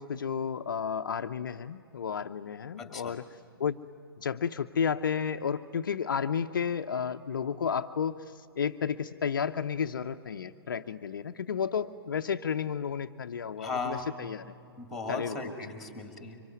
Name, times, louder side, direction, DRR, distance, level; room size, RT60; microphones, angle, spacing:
voice 1, 0.0-3.2 3.6-3.8 4.2-8.2 8.6-14.5 15.1-15.5, left 7 dB, 55° left, 7 dB, 0.6 m, -32 dB
voice 2, 2.8-3.2 13.6-14.1 14.8-16.4, left 3 dB, ahead, 6 dB, 2.4 m, -37 dB
25.0 x 24.0 x 9.5 m, 2.6 s
figure-of-eight pair, 125°, 13 cm